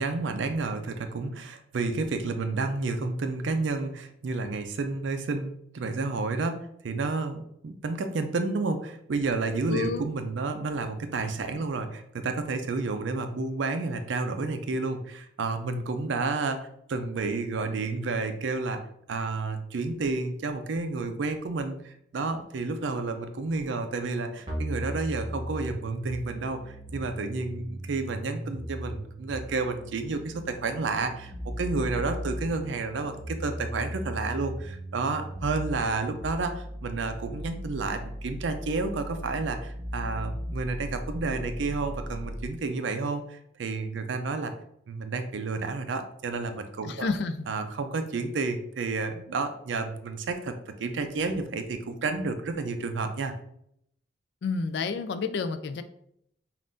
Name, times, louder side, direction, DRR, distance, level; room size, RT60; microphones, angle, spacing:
voice 1, 0.0-18.8 19.1-44.5 44.9-47.1 47.5-53.3, right 3 dB, 75° right, 8 dB, 0.4 m, -31 dB
voice 2, 9.7-10.0 46.8-47.5 54.4-55.8, left 4 dB, 60° left, 9 dB, 0.3 m, -30 dB
sound 1, 24.5-42.5, equal, 20° right, 0.8 m, -37 dB
5.4 x 2.5 x 2.5 m, 0.72 s
head